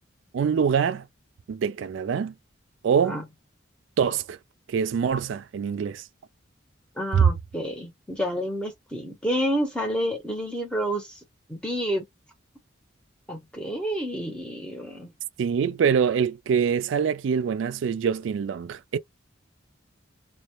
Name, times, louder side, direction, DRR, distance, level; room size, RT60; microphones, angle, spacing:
voice 1, 0.3-1.1 1.5-2.3 2.8-3.2 4.0-4.4 4.7-6.0 7.1-7.3 15.4-19.0, right 7 dB, 70° right, 0.3 m, -24 dB
voice 2, 7.0-11.1 11.5-12.0 13.3-15.1, equal, 5° left, 0.7 m, -29 dB
2.2 x 2.0 x 2.9 m
head